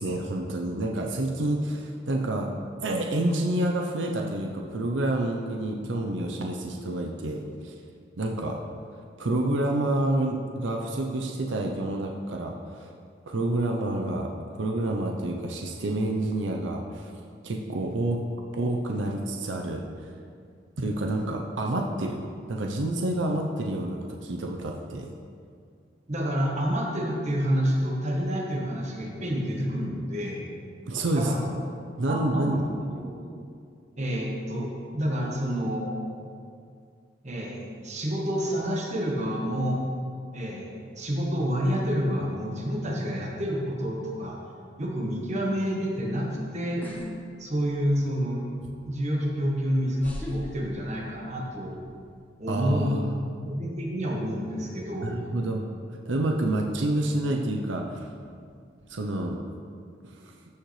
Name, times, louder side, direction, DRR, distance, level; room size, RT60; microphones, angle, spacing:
voice 1, 0.0-2.5 2.8-7.7 8.2-8.6 9.2-12.9 13.3-17.1 17.4-18.2 18.5-20.1 20.8-22.2 22.5-25.1 30.9-31.3 32.0-32.6 52.5-53.1 55.0-55.7 56.1-58.1 58.9-59.4 60.0-60.3, right 1 dB, 85° right, 1 dB, 0.7 m, -28 dB
voice 2, 26.1-30.4 31.1-31.4 32.1-32.6 32.9-33.3 34.0-36.1 37.2-39.8 40.3-44.4 44.8-46.8 47.4-48.4 48.9-51.8 52.4-52.9 53.1-55.1, equal, 40° right, -2 dB, 1.4 m, -29 dB
sound 1, 46.8-47.1 47.5-48.1 49.1-49.2 50.0-51.4 51.7-52.1, left 1 dB, 10° left, 0.9 m, -38 dB
14.0 x 6.5 x 3.3 m, 2.3 s
head